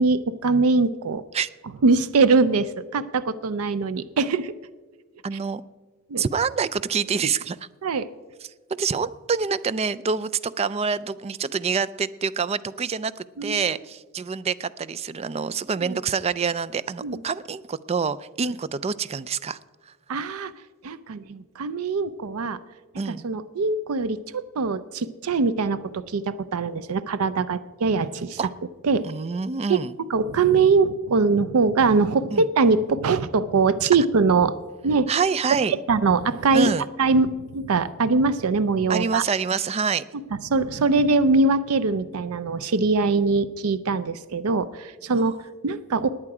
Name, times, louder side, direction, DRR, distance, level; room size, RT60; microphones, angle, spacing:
voice 1, 0.0-1.2 1.8-4.5 6.1-6.2 7.8-8.1 13.4-13.7 15.9-16.0 17.0-17.2 18.4-18.5 20.1-20.5 20.8-22.6 23.2-28.4 28.8-29.1 29.7-29.8 30.1-34.6 34.8-35.1 35.7-39.2 40.4-45.3 45.6-46.1, right 4 dB, 85° right, 15 dB, 0.5 m, -22 dB
voice 2, 5.2-5.6 6.2-7.6 8.8-19.6 23.0-23.2 28.4-28.5 29.0-29.9 32.3-32.5 35.1-35.7 36.5-36.9 38.9-40.0 45.1-45.3, right 5 dB, 30° right, 17 dB, 0.4 m, -26 dB
19.5 x 8.8 x 4.8 m, 1.3 s
head